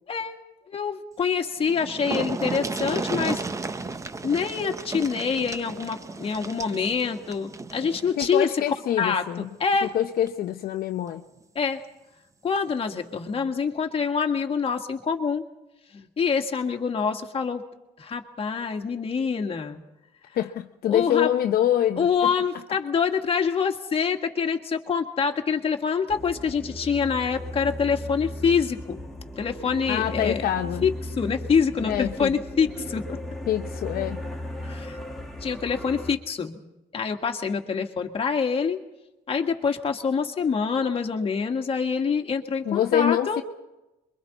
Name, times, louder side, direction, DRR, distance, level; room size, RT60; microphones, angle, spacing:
voice 1, 0.7-3.4 4.2-8.5 9.0-9.9 11.6-11.8 12.4-15.5 15.9-17.6 18.0-19.8 20.9-21.3 22.0-29.0 29.4-30.4 30.8-33.2 34.6-35.0 35.4-36.6 36.9-38.8 39.3-43.4, left 6 dB, 35° left, 1.7 m, -26 dB
sound 1, 1.3-1.4 1.6-8.4 9.7-9.9 10.3-10.4, right 3 dB, 20° right, 0.7 m, -33 dB
voice 2, 8.2-9.5 9.8-11.2 20.3-22.3 29.9-30.8 31.8-32.3 33.5-34.2 42.7-43.4, left 11 dB, 60° left, 0.7 m, -25 dB
sound 2, 26.1-36.1, left 1 dB, ahead, 2.0 m, -36 dB
27.0 x 23.0 x 4.1 m
cardioid pair, 110°, 17 cm